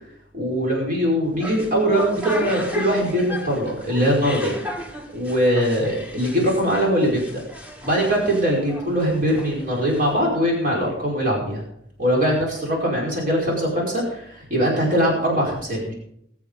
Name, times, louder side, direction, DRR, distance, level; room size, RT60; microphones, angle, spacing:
voice 1, 0.3-4.6 5.1-7.4 7.8-11.6 12.0-15.9, equal, 50° right, -2 dB, 5.2 m, -21 dB
sound 1, 1.2-10.3, left 1 dB, 5° right, 1.6 m, -35 dB
21.5 x 7.3 x 5.4 m, 0.70 s
head